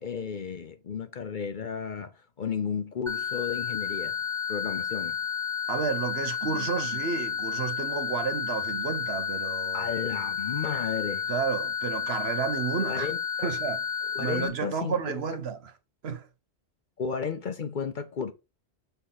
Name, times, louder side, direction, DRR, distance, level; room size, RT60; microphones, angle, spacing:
voice 1, 0.0-4.2 4.5-5.2 9.7-11.3 12.8-13.5 14.1-15.2 17.0-18.3, left 6 dB, 50° left, 0.8 m, -33 dB
sound 1, 3.1-14.5, left 7 dB, 10° right, 1.5 m, -31 dB
voice 2, 5.7-9.9 11.3-13.1 13.4-13.8 14.2-15.7 16.0-16.3, right 6 dB, 65° right, 1.1 m, -31 dB
6.7 x 3.8 x 4.0 m
omnidirectional pair, 1.2 m